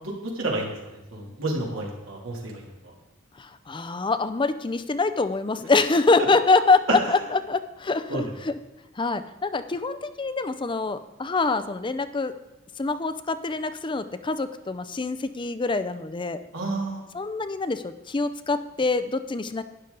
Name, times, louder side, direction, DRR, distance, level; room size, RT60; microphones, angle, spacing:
voice 1, 0.0-0.7 1.1-2.6 8.1-8.2 16.5-17.0, right 2 dB, 80° right, -2 dB, 2.9 m, -30 dB
voice 2, 3.4-8.6 9.0-12.3 12.8-16.4 17.1-19.6, left 3 dB, 25° left, 11 dB, 0.5 m, -25 dB
12.0 x 9.9 x 4.0 m, 1.0 s
head